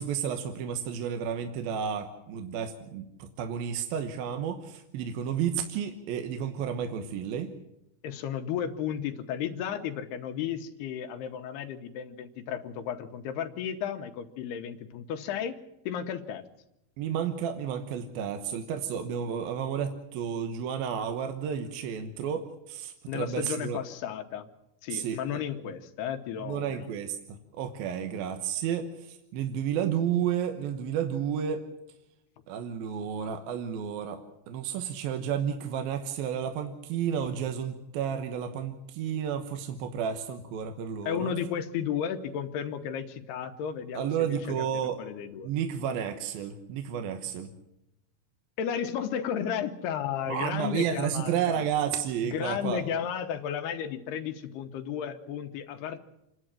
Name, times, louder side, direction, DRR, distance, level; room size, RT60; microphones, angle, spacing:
voice 1, 0.0-7.5 17.0-23.8 24.9-25.4 26.4-31.7 32.5-34.2 34.5-41.3 43.9-45.0 45.4-47.5 50.3-52.8, right 8 dB, 75° right, 6 dB, 2.8 m, -31 dB
voice 2, 8.0-15.6 15.9-16.4 23.1-24.5 24.8-26.9 41.0-44.6 45.0-45.5 48.6-51.7 52.2-56.0, left 8 dB, 85° left, 7 dB, 3.2 m, -33 dB
27.0 x 11.5 x 9.0 m, 0.85 s
omnidirectional pair, 4.5 m